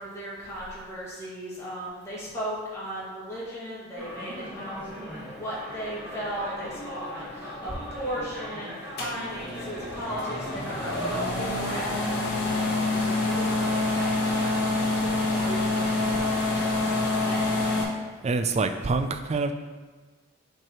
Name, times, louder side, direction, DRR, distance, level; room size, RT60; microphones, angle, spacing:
voice 1, 0.0-17.5, equal, 15° left, -9 dB, 2.0 m, -37 dB
sound 1, 3.9-11.3, equal, 10° right, 1.7 m, -39 dB
sound 2, 9.0-17.8, left 2 dB, 55° left, 1.4 m, -27 dB
voice 2, 18.2-19.5, right 3 dB, 30° right, 8 dB, 0.3 m, -26 dB
7.7 x 4.6 x 3.0 m, 1.4 s
head